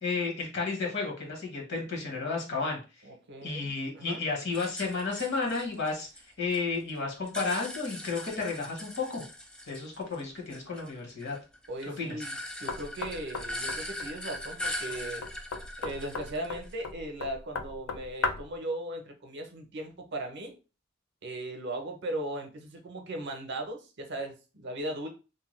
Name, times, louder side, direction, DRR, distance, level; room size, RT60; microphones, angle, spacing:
voice 1, 0.0-2.8 3.4-6.1 6.4-9.2 9.7-11.4 12.0-12.2, left 4 dB, 60° left, 0 dB, 1.0 m, -32 dB
voice 2, 3.0-4.2 11.7-15.2 15.8-20.5 21.2-25.1, right 1 dB, 55° right, 4 dB, 0.6 m, -38 dB
sound 1, 4.5-6.6 6.9-10.2 10.5-16.9, left 1 dB, 5° left, 0.3 m, -40 dB
Knock, 12.7-18.6, left 4 dB, 90° left, 0.4 m, -37 dB
2.7 x 2.2 x 3.0 m, 0.32 s
head